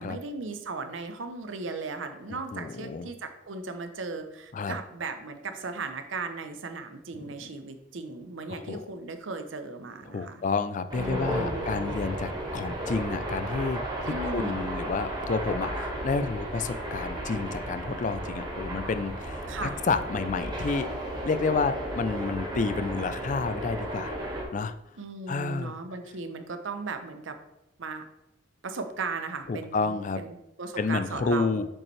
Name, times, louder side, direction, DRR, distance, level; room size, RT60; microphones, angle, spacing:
voice 1, 0.0-10.4 10.9-11.9 14.1-14.7 19.5-19.8 25.0-27.4 27.8-28.1 28.6-31.6, right 3 dB, 85° right, 8 dB, 0.7 m, -37 dB
voice 2, 2.5-3.1 4.5-4.8 7.1-7.3 8.5-8.8 10.1-20.9 21.2-24.1 24.5-24.7 25.3-25.7 29.5-30.2 30.8-31.7, left 4 dB, 40° left, 11 dB, 0.3 m, -30 dB
sound 1, 10.9-24.4, right 1 dB, 25° right, 1.4 m, -34 dB
7.1 x 5.3 x 3.2 m, 0.89 s
head